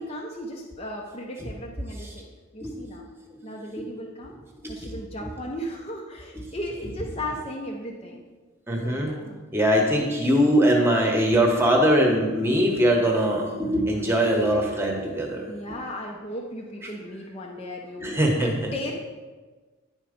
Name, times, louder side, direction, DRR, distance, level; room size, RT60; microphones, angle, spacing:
voice 1, 0.0-2.3 2.5-3.1 3.4-4.4 4.7-8.2 8.8-9.4 15.5-18.9, equal, 25° left, 0 dB, 0.7 m, -36 dB
voice 2, 4.6-5.0 8.7-9.1 9.5-15.4 18.0-18.5, equal, 10° right, 0 dB, 1.1 m, -21 dB
10.0 x 4.5 x 5.1 m, 1.3 s
head